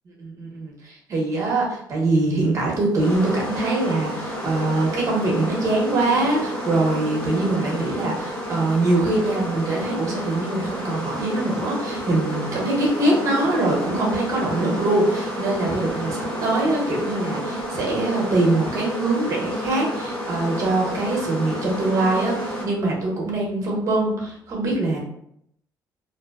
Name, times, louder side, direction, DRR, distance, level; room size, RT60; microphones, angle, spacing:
voice 1, 0.2-25.0, right 2 dB, 45° right, -2 dB, 0.8 m, -23 dB
sound 1, 3.0-22.7, equal, 25° left, 0.8 m, -30 dB
2.5 x 2.1 x 2.3 m, 0.71 s
cardioid pair, 155°, 8 cm